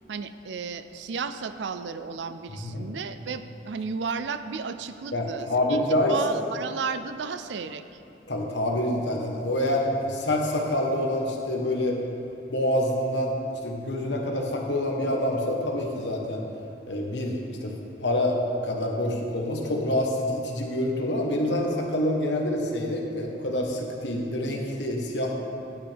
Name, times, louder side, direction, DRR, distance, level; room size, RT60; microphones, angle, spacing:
voice 1, 0.1-8.0, right 5 dB, 85° right, 11 dB, 0.4 m, -34 dB
voice 2, 2.5-2.9 5.1-6.2 8.3-12.0 12.5-13.3 13.6-16.4 16.9-17.7 18.0-25.4, left 1 dB, 85° left, 1 dB, 1.3 m, -27 dB
10.5 x 8.9 x 3.5 m, 2.8 s
head